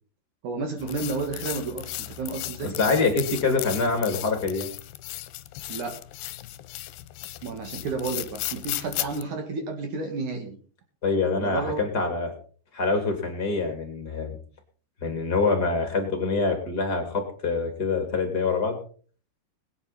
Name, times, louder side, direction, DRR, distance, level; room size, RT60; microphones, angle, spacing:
voice 1, 0.4-2.8 5.7-6.0 7.4-10.6 11.4-11.9, right 3 dB, 55° right, 4 dB, 2.9 m, -31 dB
sound 1, 0.8-9.2, left 16 dB, 80° left, 2.7 m, -36 dB
voice 2, 2.8-4.7 11.0-12.3 12.7-14.4 15.0-18.7, left 4 dB, 25° left, 4 dB, 2.8 m, -25 dB
21.0 x 9.7 x 4.2 m, 0.43 s
omnidirectional pair, 4.8 m